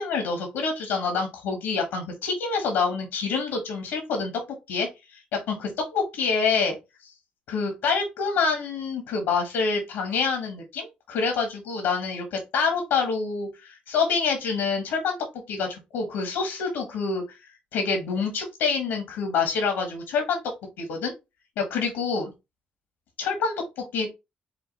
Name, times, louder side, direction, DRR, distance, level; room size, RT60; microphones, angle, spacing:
voice 1, 0.0-4.3 4.7-5.2 5.5-6.7 7.0-7.1 7.5-15.2 15.5-17.4 17.7-20.4 20.8-21.1 21.6-22.3 23.2-24.1, left 5 dB, 90° left, 3 dB, 1.3 m, -27 dB
5.0 x 2.3 x 3.9 m, 0.23 s
supercardioid pair, 55°, 3 cm